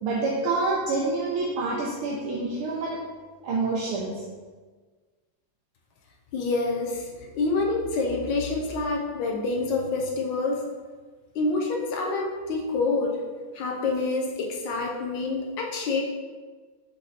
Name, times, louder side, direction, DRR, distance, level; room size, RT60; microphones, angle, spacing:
voice 1, 0.0-3.0 3.4-4.2, right 3 dB, 85° right, -4 dB, 1.5 m, -27 dB
voice 2, 6.3-10.6 11.3-13.2 13.5-16.0, left 3 dB, 70° left, 0 dB, 1.2 m, -27 dB
5.0 x 3.9 x 2.7 m, 1.4 s
omnidirectional pair, 2.4 m